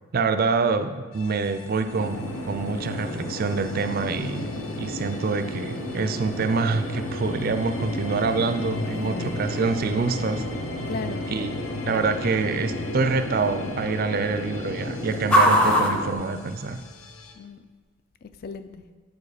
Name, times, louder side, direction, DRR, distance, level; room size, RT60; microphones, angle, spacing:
voice 1, 0.1-10.4 11.3-11.5 11.9-16.8, right 4 dB, 45° right, 9 dB, 0.4 m, -26 dB
sound 1, 1.1-17.3, left 4 dB, 70° left, 0.8 m, -46 dB
sound 2, 1.9-16.1, left 1 dB, 85° left, 1.4 m, -32 dB
sound 3, 2.3-17.1, equal, 5° left, 0.6 m, -31 dB
voice 2, 8.9-9.4 10.9-11.6 17.3-17.7 18.2-18.9, left 4 dB, 45° left, 10 dB, 0.4 m, -37 dB
7.9 x 4.8 x 4.8 m, 1.4 s
head